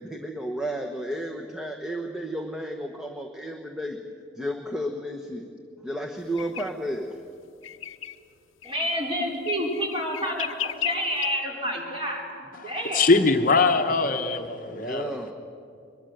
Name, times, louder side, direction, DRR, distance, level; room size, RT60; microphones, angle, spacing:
voice 1, 0.0-4.0 4.4-5.5 5.8-7.2 14.7-15.3, equal, 5° right, 1.0 m, -32 dB
sound 1, 6.4-6.7 7.6-8.2 8.6-9.0 9.5-11.3, left 12 dB, 85° left, 0.7 m, -34 dB
voice 2, 8.6-13.1, equal, 25° right, 4.2 m, -29 dB
voice 3, 12.6-15.2, left 3 dB, 45° left, 0.9 m, -22 dB
22.5 x 21.0 x 7.9 m
head